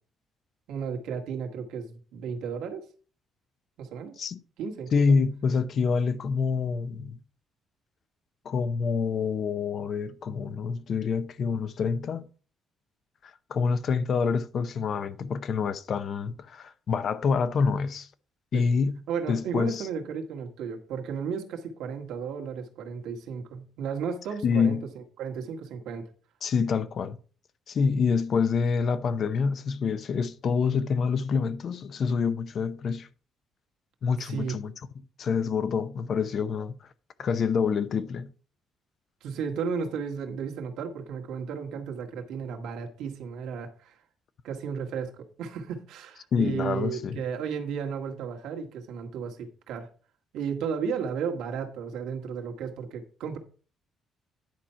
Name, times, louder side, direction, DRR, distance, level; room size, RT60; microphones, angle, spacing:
voice 1, 0.7-2.8 3.8-4.1 4.6-5.0 18.5-18.7 19.1-24.8 25.2-26.1 34.2-34.5 39.2-44.0 44.4-49.9 50.3-53.4, right 6 dB, 90° right, 1.7 m, -34 dB
voice 2, 4.9-7.2 8.4-12.3 13.2-18.1 18.5-19.0 19.3-19.9 24.4-24.9 26.4-27.2 27.7-33.1 34.0-34.7 35.2-36.9 37.2-38.3 46.3-47.2, left 5 dB, 50° left, 0.7 m, -27 dB
10.5 x 4.3 x 5.7 m
cardioid pair, 115°, 0 cm